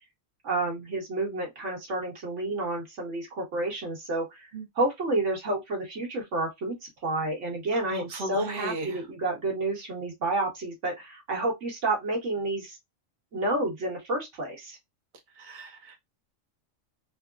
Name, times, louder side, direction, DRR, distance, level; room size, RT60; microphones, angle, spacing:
voice 1, 0.4-4.5 4.7-12.8 13.3-14.8, right 2 dB, 70° right, 1.6 m, -30 dB
voice 2, 7.9-8.9 15.4-16.0, right 2 dB, 45° right, 0.8 m, -36 dB
3.5 x 2.0 x 2.3 m
omnidirectional pair, 1.3 m